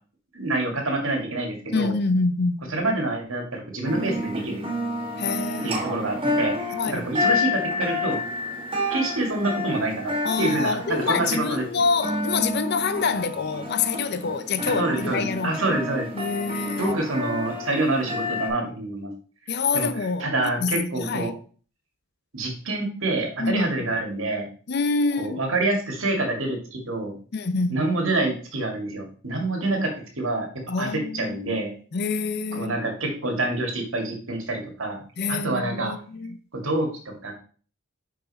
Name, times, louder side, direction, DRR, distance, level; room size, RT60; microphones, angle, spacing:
voice 1, 0.3-1.9 2.7-4.6 5.6-8.2 8.9-11.6 14.8-16.1 16.8-19.1 19.5-19.9 20.2-21.3 22.3-24.5 25.2-27.1 27.7-30.5 30.8-31.7 32.5-35.0 35.3-35.9 36.5-36.9 37.2-37.3, right 2 dB, 75° right, 2.1 m, -27 dB
voice 2, 1.7-2.7 5.2-5.8 6.7-7.1 10.2-15.6 16.1-16.9 19.5-20.3 20.6-21.3 23.4-23.7 24.7-25.4 27.3-27.9 30.7-31.6 31.9-32.8 35.2-36.4, left 4 dB, 50° left, 0.5 m, -26 dB
sound 1, 3.8-18.5, left 2 dB, 25° right, 1.8 m, -30 dB
6.3 x 5.2 x 4.1 m
head